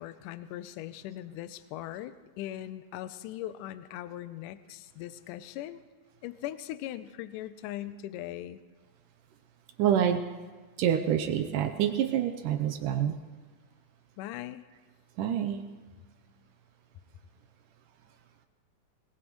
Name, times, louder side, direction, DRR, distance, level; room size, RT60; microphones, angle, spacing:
voice 1, 0.0-5.8 6.2-8.6 14.2-14.6, left 13 dB, 80° left, 13 dB, 2.0 m, -40 dB
voice 2, 9.8-10.2 10.8-13.2 15.2-15.6, right 9 dB, 75° right, 7 dB, 2.1 m, -27 dB
21.0 x 20.5 x 3.1 m, 1.3 s
omnidirectional pair, 4.2 m